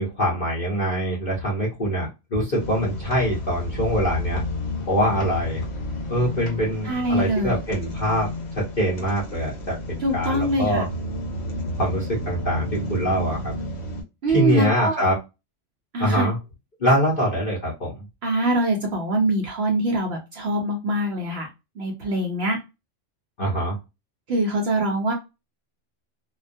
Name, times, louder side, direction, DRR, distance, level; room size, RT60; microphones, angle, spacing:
voice 1, 0.0-4.4 4.9-5.6 6.1-9.8 10.1-10.9 11.8-13.5 14.3-15.1 16.0-16.4 16.8-17.9 23.4-23.8, equal, 45° left, -5 dB, 0.8 m, -24 dB
sound 1, 2.6-14.0, left 1 dB, 60° left, 1.1 m, -31 dB
voice 2, 6.8-7.6 10.0-10.9 14.2-15.1 15.9-16.3 18.2-21.5 21.8-22.6 24.3-25.1, right 1 dB, 65° right, 1 dB, 0.8 m, -24 dB
2.3 x 2.1 x 2.5 m, 0.25 s
omnidirectional pair, 1.3 m